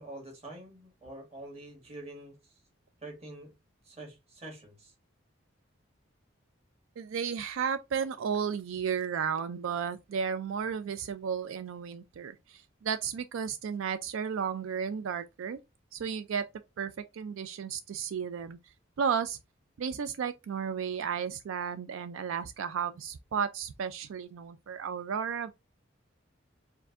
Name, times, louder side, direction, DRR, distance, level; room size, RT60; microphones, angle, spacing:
voice 1, 0.0-2.5 3.0-3.5 3.8-4.9, right 2 dB, 30° right, 1.6 m, -46 dB
voice 2, 7.0-15.6 15.9-16.4 16.8-18.6 19.0-19.4 19.8-25.5, right 7 dB, 80° right, 0.4 m, -33 dB
4.6 x 2.6 x 3.5 m
head